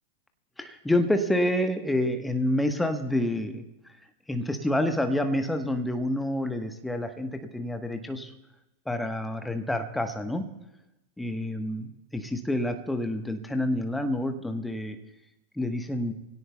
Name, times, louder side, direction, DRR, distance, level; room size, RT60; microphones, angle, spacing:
voice 1, 0.6-3.6 4.3-8.3 8.9-10.4 11.2-15.0 15.6-16.1, left 1 dB, 5° left, 7 dB, 1.2 m, -28 dB
25.0 x 17.0 x 2.3 m, 0.94 s
figure-of-eight pair, 90°, 0 cm